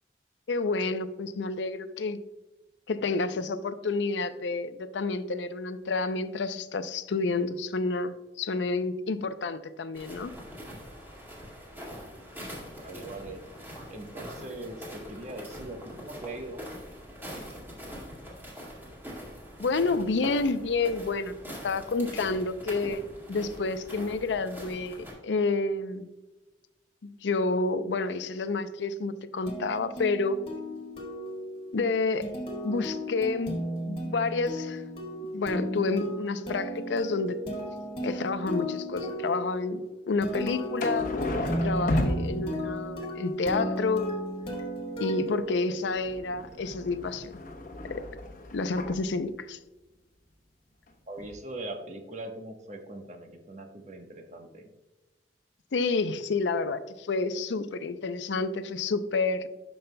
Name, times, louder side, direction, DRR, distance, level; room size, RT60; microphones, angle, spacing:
voice 1, 0.5-2.2 2.9-10.3 19.6-21.3 21.6-23.0 23.3-26.1 27.2-30.4 31.7-32.3 32.6-34.8 35.3-37.4 38.0-41.1 41.6-44.1 45.0-47.3 47.8-48.0 48.5-49.6 55.7-59.5, left 3 dB, 90° left, 12 dB, 0.5 m, -29 dB
sound 1, 9.9-25.1, equal, 10° right, 2.0 m, -43 dB
voice 2, 12.8-13.4 13.9-16.7 51.1-54.7, right 2 dB, 40° right, 4 dB, 1.1 m, -41 dB
sound 2, 29.5-46.1, equal, 30° left, 1.6 m, -35 dB
sound 3, 40.8-42.9 45.8-49.0 50.9-51.0 51.2-51.3, left 1 dB, 50° left, 0.9 m, -33 dB
12.0 x 5.4 x 2.2 m, 1.1 s
head